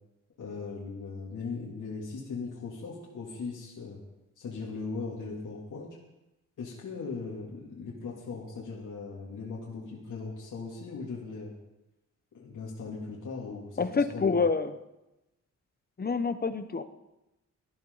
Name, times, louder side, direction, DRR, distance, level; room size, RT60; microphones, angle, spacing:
voice 1, 0.4-4.0 4.4-6.0 6.6-11.5 12.3-14.4, left 4 dB, 70° left, -5 dB, 3.1 m, -39 dB
voice 2, 13.8-14.7 16.0-16.8, left 4 dB, 30° left, 10 dB, 0.9 m, -27 dB
19.0 x 13.0 x 4.1 m, 0.96 s
wide cardioid pair, 115°, 31 cm